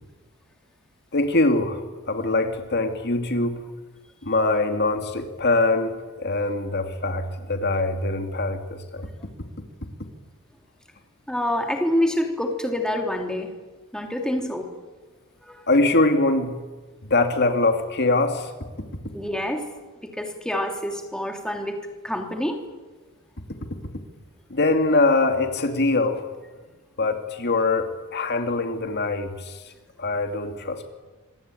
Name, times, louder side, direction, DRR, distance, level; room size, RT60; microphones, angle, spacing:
voice 1, 1.1-1.8 2.1-3.6 4.2-9.1 15.7-16.6 17.1-18.5 24.5-26.2 27.0-29.6 30.0-30.9, left 2 dB, 50° left, 6 dB, 2.4 m, -23 dB
voice 2, 11.3-13.5 13.9-14.7 15.5-15.6 19.1-19.7 20.0-21.8 22.0-22.6, left 1 dB, 5° left, 3 dB, 3.3 m, -26 dB
27.0 x 23.0 x 9.1 m, 1.3 s
head